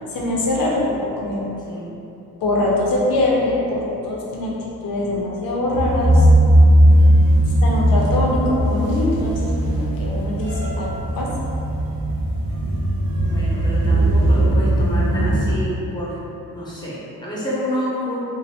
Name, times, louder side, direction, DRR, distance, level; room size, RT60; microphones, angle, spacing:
voice 1, 0.1-1.4 2.4-4.5 4.8-6.2 7.6-11.3, left 2 dB, 65° left, -4 dB, 0.6 m, -23 dB
sound 1, 5.7-15.5, right 1 dB, 65° right, 0.7 m, -17 dB
voice 2, 13.2-16.2 16.5-18.2, equal, 10° left, -8 dB, 0.6 m, -28 dB
2.5 x 2.1 x 3.3 m, 2.8 s
wide cardioid pair, 130°, 37 cm